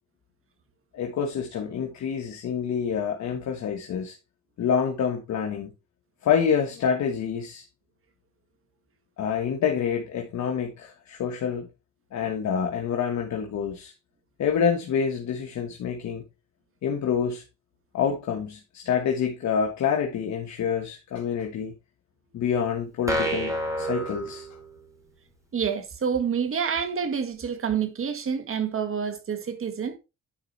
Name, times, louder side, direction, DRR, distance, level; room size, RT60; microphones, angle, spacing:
voice 1, 0.9-4.2 4.6-5.7 6.2-7.6 9.2-11.7 12.1-13.9 14.4-16.2 16.8-17.4 17.9-21.7 22.3-24.5, left 7 dB, 65° left, 1.5 m, -27 dB
sound 1, 23.1-25.0, right 1 dB, 10° right, 2.8 m, -29 dB
voice 2, 25.5-30.0, right 7 dB, 45° right, 1.8 m, -28 dB
10.0 x 5.0 x 4.1 m
cardioid pair, 90°, 30 cm